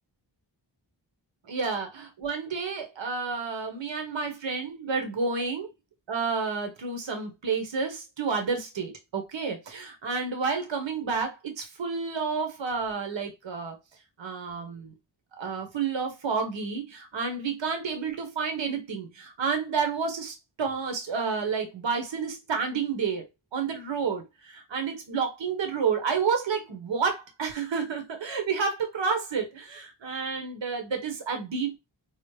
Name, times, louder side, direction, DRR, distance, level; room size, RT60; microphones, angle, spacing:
voice 1, 1.5-5.7 6.1-13.8 14.2-14.9 15.4-23.3 23.5-31.9, right 5 dB, 75° right, 1.0 m, -30 dB
4.9 x 2.0 x 3.1 m
wide cardioid pair, 60°, 45 cm